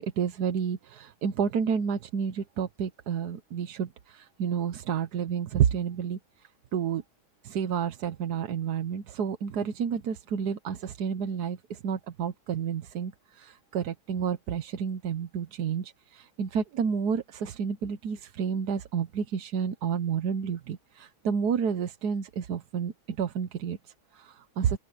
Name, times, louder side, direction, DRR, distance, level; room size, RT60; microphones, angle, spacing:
voice 1, 0.0-7.0 7.4-24.8, right 7 dB, 85° right, 1.5 m, -30 dB
open air
omnidirectional pair, 1.6 m